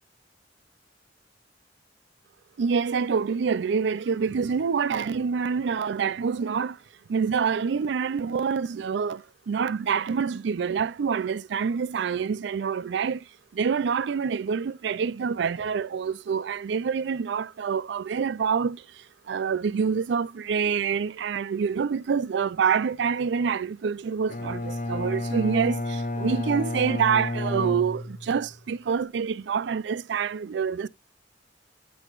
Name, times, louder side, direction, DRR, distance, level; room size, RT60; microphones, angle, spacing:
voice 1, 2.6-6.8 7.1-13.2 13.5-18.8 19.3-30.9, right 6 dB, 70° right, 0.4 m, -26 dB
Bowed string instrument, 24.3-28.5, left 2 dB, 45° left, 0.6 m, -31 dB
9.0 x 6.3 x 2.4 m
head